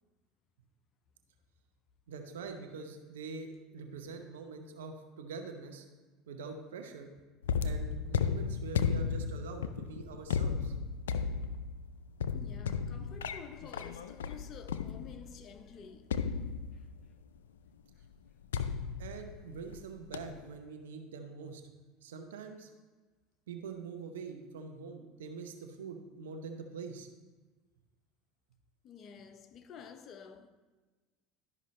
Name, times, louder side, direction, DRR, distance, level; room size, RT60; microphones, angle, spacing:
voice 1, 2.1-5.8 6.3-7.1 7.6-10.7 19.0-21.7 22.0-22.7 23.5-27.1, right 4 dB, 85° right, 0.9 m, -44 dB
sound 1, 7.4-15.4 16.1-17.1 18.5-19.8 20.1-20.5, left 6 dB, 90° left, 0.3 m, -34 dB
voice 2, 12.3-16.1 16.7-16.9 28.8-30.5, left 6 dB, 45° left, 0.7 m, -50 dB
12.0 x 5.3 x 3.2 m
hypercardioid pair, 85°, 0 cm